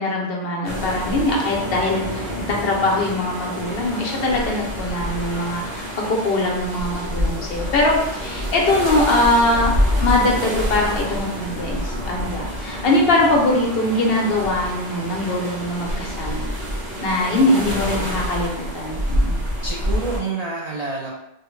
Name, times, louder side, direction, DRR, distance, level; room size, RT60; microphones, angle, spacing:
voice 1, 0.0-9.7 10.0-16.5 17.0-19.4, left 2 dB, 60° left, -1 dB, 0.9 m, -22 dB
sound 1, 0.6-20.2, equal, 85° right, 1.5 m, -27 dB
voice 2, 17.4-18.2 19.6-21.1, right 3 dB, 50° right, -4 dB, 0.5 m, -29 dB
3.5 x 2.1 x 3.1 m, 0.86 s
omnidirectional pair, 1.2 m